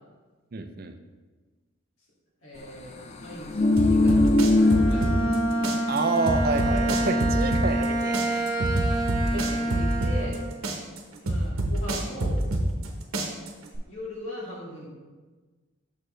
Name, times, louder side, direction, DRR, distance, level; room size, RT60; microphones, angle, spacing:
voice 1, 0.5-1.0 5.9-8.4 9.3-9.4 10.2-10.3, right 3 dB, 45° right, 7 dB, 0.4 m, -28 dB
voice 2, 2.4-3.0 3.2-4.3 4.9-5.2 9.1-10.4 11.2-12.4 13.9-14.9, equal, 75° left, -5 dB, 2.2 m, -39 dB
sound 1, 3.2-5.9 6.2-6.3, left 2 dB, 30° left, 0.4 m, -22 dB
sound 2, 3.8-5.4 5.6-7.9 8.1-10.4 10.6-12.9 13.1-13.8, right 1 dB, 85° right, 0.9 m, -26 dB
Bowed string instrument, 4.5-10.6, right 1 dB, 10° right, 1.2 m, -28 dB
6.5 x 6.2 x 3.2 m, 1.4 s
head